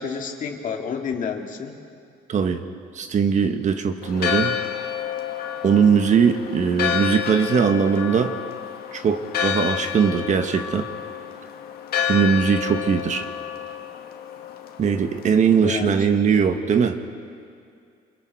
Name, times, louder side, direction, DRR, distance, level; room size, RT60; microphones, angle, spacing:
voice 1, 0.0-1.8 15.6-15.9, left 6 dB, 50° left, 3 dB, 2.1 m, -29 dB
voice 2, 2.3-2.6 2.9-4.6 5.6-8.3 8.9-10.9 12.1-13.3 14.8-17.0, right 6 dB, 45° right, 7 dB, 1.4 m, -20 dB
Church bell, 4.0-15.6, left 9 dB, 65° left, 1.8 m, -29 dB
28.0 x 21.5 x 4.7 m, 2.3 s
cardioid pair, 110°, 17 cm